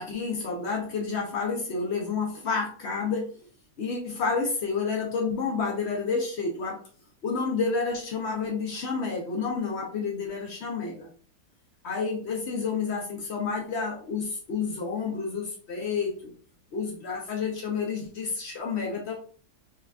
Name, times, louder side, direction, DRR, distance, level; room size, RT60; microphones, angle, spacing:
voice 1, 0.0-3.3 3.8-6.8 7.2-11.1 11.8-16.3 16.7-19.1, left 4 dB, 90° left, -1 dB, 0.5 m, -30 dB
3.4 x 2.4 x 3.4 m, 0.42 s
omnidirectional pair, 2.0 m